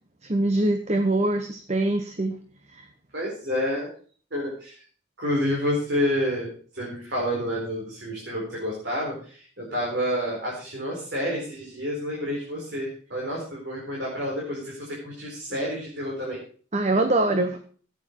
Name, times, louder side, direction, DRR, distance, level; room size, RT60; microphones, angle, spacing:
voice 1, 0.3-2.3 2.7-2.8 16.7-17.6, right 2 dB, 35° right, 7 dB, 1.0 m, -23 dB
voice 2, 3.1-3.9 4.3-4.8 5.2-16.4, equal, 55° right, -3 dB, 4.4 m, -29 dB
14.5 x 9.6 x 4.6 m, 0.44 s
head